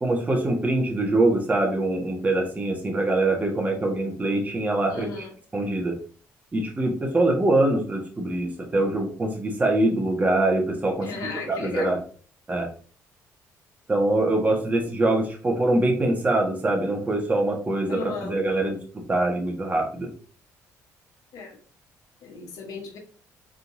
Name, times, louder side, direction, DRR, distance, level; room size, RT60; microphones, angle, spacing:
voice 1, 0.0-5.2 5.5-6.0 6.5-11.1 11.5-12.0 12.5-12.7 13.9-18.8 19.1-20.1, right 2 dB, 25° right, 0 dB, 1.5 m, -23 dB
voice 2, 4.9-5.3 11.0-12.0 17.9-18.4 21.3-21.6 22.2-23.0, left 4 dB, 75° left, 2 dB, 1.3 m, -35 dB
4.4 x 3.8 x 2.7 m, 0.43 s
cardioid pair, 90°, 6 cm